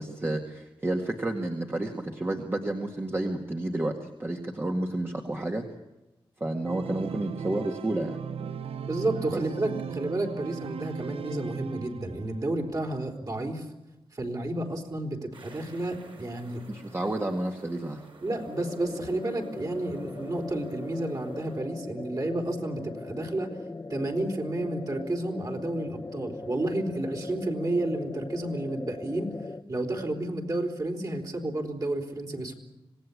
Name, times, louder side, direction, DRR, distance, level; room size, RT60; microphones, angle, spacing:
voice 1, 0.0-5.7 6.4-8.2 9.3-9.4 16.7-18.0, right 1 dB, 25° right, 2 dB, 1.9 m, -30 dB
Organ, 6.6-12.4, right 6 dB, 90° right, 0.9 m, -37 dB
voice 2, 8.8-13.7 14.1-16.6 18.2-23.5 23.9-29.3 29.7-32.5, right 1 dB, 40° right, 2 dB, 4.2 m, -31 dB
sound 1, 15.3-21.6, right 2 dB, 65° right, 5.9 m, -51 dB
sound 2, 18.3-29.6, left 3 dB, 30° left, 0.7 m, -40 dB
26.0 x 18.5 x 8.5 m, 0.99 s
wide cardioid pair, 110°, 10 cm